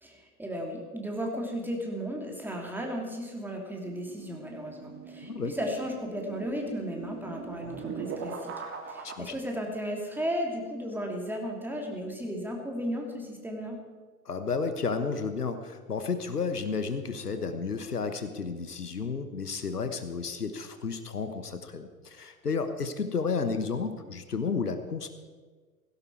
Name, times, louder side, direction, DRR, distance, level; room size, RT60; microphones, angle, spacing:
voice 1, 0.0-8.5 8.9-13.8, equal, 5° right, 0 dB, 2.9 m, -35 dB
sound 1, 3.8-9.2, right 5 dB, 30° right, 2.1 m, -41 dB
voice 2, 9.0-9.3 14.2-25.1, left 5 dB, 80° left, 9 dB, 1.4 m, -32 dB
17.5 x 16.0 x 4.8 m, 1.4 s
figure-of-eight pair, 90°, 46 cm